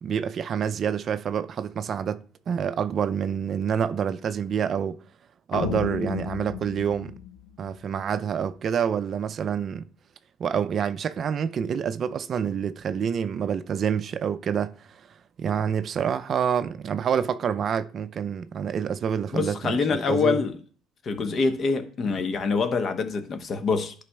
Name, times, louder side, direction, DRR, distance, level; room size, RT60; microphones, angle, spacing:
voice 1, 0.0-5.0 5.5-7.1 7.6-9.9 10.4-15.0 15.4-20.4, right 7 dB, 50° right, 0.4 m, -27 dB
sound 1, 5.5-8.0, left 9 dB, 70° left, 0.5 m, -34 dB
voice 2, 19.3-20.6 21.0-23.9, left 4 dB, 45° left, 1.0 m, -25 dB
11.0 x 5.0 x 2.3 m
hypercardioid pair, 70°, 0 cm